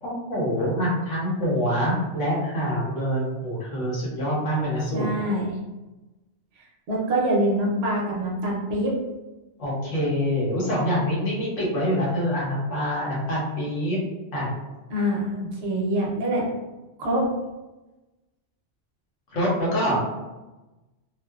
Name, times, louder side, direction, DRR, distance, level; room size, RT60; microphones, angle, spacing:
voice 1, 0.0-5.2 9.6-14.0 14.3-14.5 19.3-20.0, equal, 80° left, -5 dB, 1.2 m, -25 dB
voice 2, 4.9-5.5 6.6-8.9 14.9-16.5 17.0-17.3, right 1 dB, 65° right, -3 dB, 0.8 m, -25 dB
2.8 x 2.0 x 2.2 m, 1.1 s
omnidirectional pair, 1.3 m